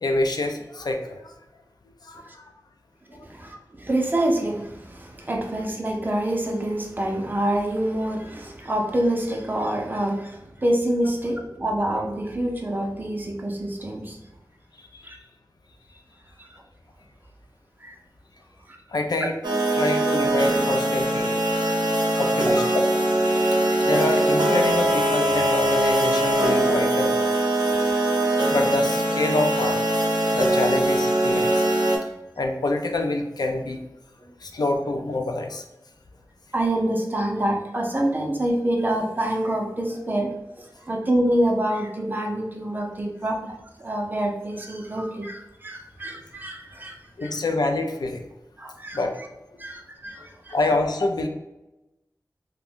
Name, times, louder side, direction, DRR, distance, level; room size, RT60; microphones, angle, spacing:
voice 1, 0.0-1.3 2.0-2.5 3.1-3.3 15.0-15.1 18.9-19.3 19.8-21.3 22.2-22.8 23.8-27.3 28.5-29.8 30.3-31.7 32.4-33.8 34.4-35.6 47.2-48.2 48.9-49.2 50.5-51.3, left 2 dB, 70° left, 0.4 m, -26 dB
voice 2, 3.1-14.2 15.0-15.2 16.5-16.6 17.8-17.9 18.7-18.8 19.2-19.3 19.8-19.9 22.1-22.3 23.3-23.4 23.8-24.1 36.5-47.3 48.6-49.0 49.6-50.6, right 1 dB, 25° right, 0.5 m, -26 dB
sound 1, 19.4-32.0, right 1 dB, 80° right, 0.6 m, -22 dB
2.5 x 2.2 x 3.5 m
wide cardioid pair, 80°, 7 cm